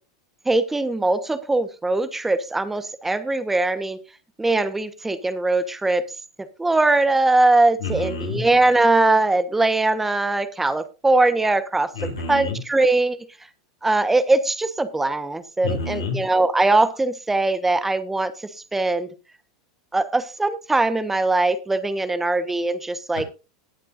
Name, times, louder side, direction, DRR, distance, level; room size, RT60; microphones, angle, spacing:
voice 1, 0.4-4.0 4.4-6.1 6.6-11.9 12.3-13.2 13.8-18.3 18.7-19.1 19.9-23.2, right 2 dB, 10° right, 11 dB, 1.2 m, -21 dB
voice 2, 7.8-8.4 11.9-12.6 15.6-16.2 23.2-23.3, left 3 dB, 90° left, 1 dB, 5.7 m, -28 dB
19.5 x 7.4 x 2.6 m, 0.30 s
hypercardioid pair, 95°, 2 cm